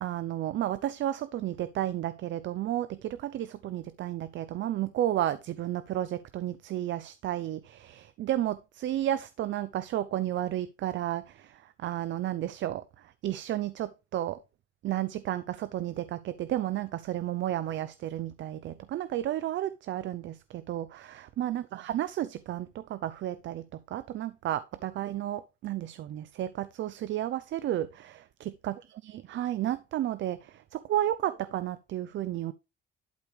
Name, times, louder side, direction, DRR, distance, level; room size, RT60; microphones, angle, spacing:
voice 1, 0.0-12.8 13.2-14.4 14.8-28.8 29.0-32.5, right 12 dB, 70° right, 0.6 m, -32 dB
11.5 x 4.9 x 3.2 m
cardioid pair, 90°, 20 cm